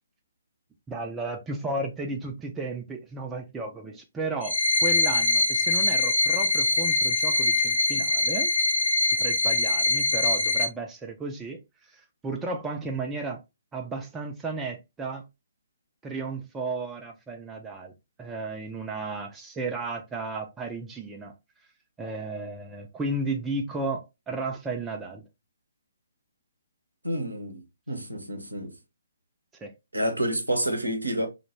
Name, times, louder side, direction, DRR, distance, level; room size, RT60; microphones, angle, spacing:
voice 1, 0.9-4.6 4.8-8.5 9.2-13.4 13.7-15.2 16.0-17.9 18.2-21.3 22.0-25.2 29.5-29.7, right 3 dB, 10° right, 0.4 m, -34 dB
sound 1, 4.4-10.7, left 3 dB, 70° left, 0.8 m, -23 dB
voice 2, 27.0-28.7 29.9-31.3, right 1 dB, 80° right, 0.7 m, -29 dB
2.2 x 2.1 x 2.9 m
figure-of-eight pair, 130°, 0 cm